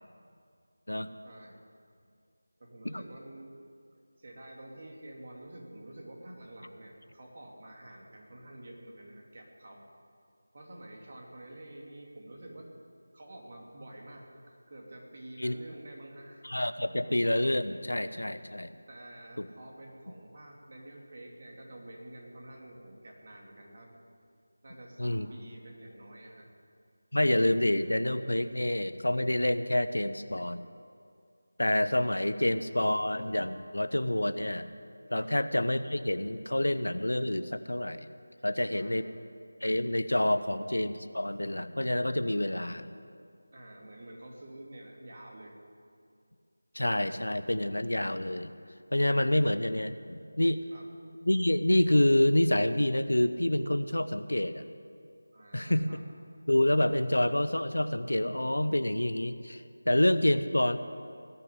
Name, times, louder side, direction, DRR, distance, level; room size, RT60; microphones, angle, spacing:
voice 1, 1.2-1.6 2.6-3.5 4.2-9.8 10.5-12.7 13.1-16.5 18.9-23.9 24.6-26.5 32.3-32.4 35.2-35.3 38.7-39.1 40.3-40.5 43.5-45.6 50.7-50.9 55.3-56.0, right 1 dB, 40° right, -1 dB, 2.7 m, -48 dB
voice 2, 16.4-18.7 19.4-19.5 25.0-25.3 27.1-30.6 31.6-34.7 35.1-38.1 38.4-39.1 39.6-42.8 46.7-48.5 48.9-50.6 51.2-54.6 55.5-56.0 56.5-60.8, left 1 dB, 75° left, 12 dB, 0.8 m, -27 dB
19.0 x 6.9 x 9.9 m, 2.3 s
figure-of-eight pair, 165°, 0 cm